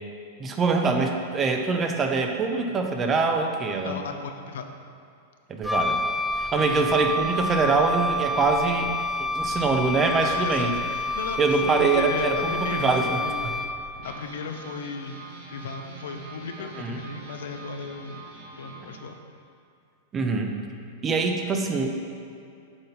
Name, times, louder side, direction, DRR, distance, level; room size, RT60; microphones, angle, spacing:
voice 1, 0.4-4.0 5.5-6.0 6.4-8.9 9.2-10.8 11.4-13.6 16.8-17.0 20.1-20.5 21.0-21.9, right 4 dB, 25° right, 4 dB, 0.8 m, -24 dB
voice 2, 3.8-4.7 6.6-6.7 10.2-13.6 14.0-15.2 15.5-18.3 18.6-19.2, left 5 dB, 70° left, 6 dB, 0.6 m, -36 dB
Wind instrument woodwind instrument, 5.6-14.0, left 2 dB, 5° left, 0.4 m, -28 dB
sound 1, 14.0-19.0, right 3 dB, 60° right, 1.5 m, -45 dB
8.0 x 4.1 x 5.4 m, 2.4 s
hypercardioid pair, 100°, 0 cm